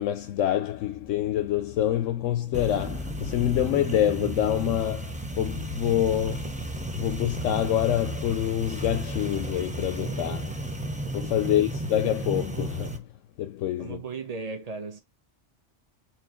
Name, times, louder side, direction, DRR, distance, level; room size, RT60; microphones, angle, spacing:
voice 1, 0.0-6.5 6.9-10.6 11.1-13.1 13.4-14.0, left 11 dB, 80° left, 0.9 m, -26 dB
sound 1, 2.5-13.0, right 1 dB, 10° right, 0.5 m, -33 dB
voice 2, 13.8-15.0, right 4 dB, 35° right, 1.1 m, -36 dB
4.5 x 3.0 x 3.0 m
omnidirectional pair, 1.3 m